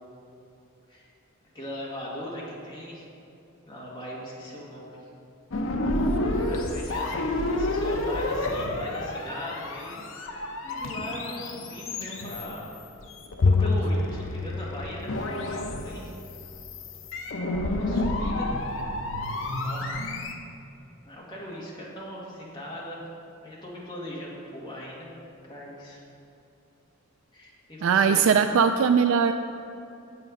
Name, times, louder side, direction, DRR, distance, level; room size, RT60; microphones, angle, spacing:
voice 1, 1.5-3.1 3.6-5.0 6.2-10.2 10.6-12.7 13.4-16.1 17.4-18.6 19.4-19.9 21.1-23.0 23.4-25.1 25.4-26.0 27.3-28.2, equal, 20° left, -6 dB, 1.9 m, -39 dB
sound 1, 5.5-20.3, left 1 dB, 65° left, 0.8 m, -30 dB
Bowed string instrument, 13.4-16.0, left 3 dB, 50° left, 0.4 m, -26 dB
voice 2, 27.8-29.3, right 6 dB, 70° right, 8 dB, 0.3 m, -20 dB
8.1 x 7.7 x 5.3 m, 2.7 s
head